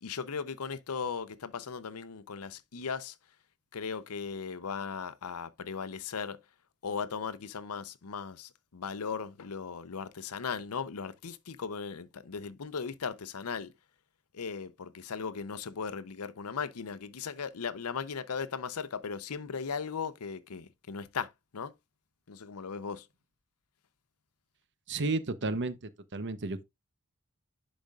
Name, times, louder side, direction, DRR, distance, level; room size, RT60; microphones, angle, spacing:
voice 1, 0.0-3.2 3.7-6.4 6.8-13.7 14.3-21.7 22.3-23.1, left 6 dB, 85° left, 0.7 m, -37 dB
voice 2, 24.9-25.8 26.1-26.6, right 3 dB, 55° right, 0.9 m, -32 dB
10.5 x 5.0 x 2.4 m
head